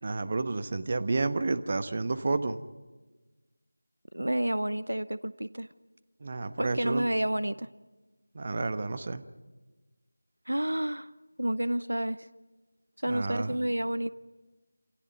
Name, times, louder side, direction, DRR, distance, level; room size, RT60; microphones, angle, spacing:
voice 1, 0.0-2.6 6.2-7.1 8.3-9.2 13.1-13.6, right 3 dB, 35° right, 1.2 m, -30 dB
voice 2, 4.1-5.7 6.6-7.7 10.5-11.1 11.4-12.3 13.0-14.1, right 1 dB, 75° right, 0.8 m, -30 dB
28.5 x 28.0 x 5.5 m
figure-of-eight pair, 170°, 0 cm